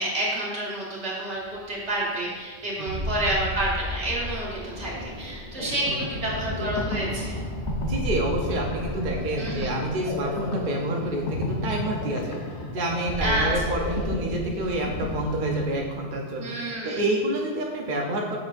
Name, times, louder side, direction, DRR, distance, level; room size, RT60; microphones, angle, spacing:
voice 1, 0.0-7.4 9.4-9.7 13.2-13.8 16.4-17.0, right 1 dB, 75° right, -5 dB, 2.0 m, -29 dB
sound 1, 1.3-11.8 12.2-12.6 12.9-15.8, equal, 25° right, 0.9 m, -36 dB
voice 2, 2.8-3.3 5.9-6.0 7.8-12.4 12.7-16.6 16.8-18.4, right 1 dB, 50° right, 0 dB, 0.8 m, -28 dB
Thunder, 4.0-10.4 11.4-11.6, left 1 dB, 40° left, 1.6 m, -38 dB
sound 2, 5.6-16.1, left 1 dB, 75° left, 1.2 m, -34 dB
7.2 x 6.3 x 2.6 m, 1.5 s
omnidirectional pair, 1.2 m